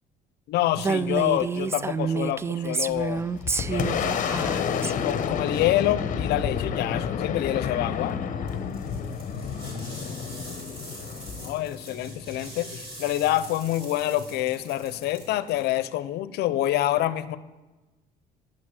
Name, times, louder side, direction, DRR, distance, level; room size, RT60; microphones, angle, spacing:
voice 1, 0.5-3.2 3.7-8.2 11.4-17.4, left 14 dB, 75° left, 16 dB, 0.6 m, -27 dB
Female speech woman speaking, 0.8-4.9, right 5 dB, 15° right, 0.3 m, -28 dB
Boom, 2.9-12.3, left 7 dB, 50° left, 0.8 m, -30 dB
sound 1, 8.5-15.7, equal, 35° right, 4.4 m, -43 dB
10.0 x 6.2 x 7.5 m, 1.1 s
cardioid pair, 110°, 17 cm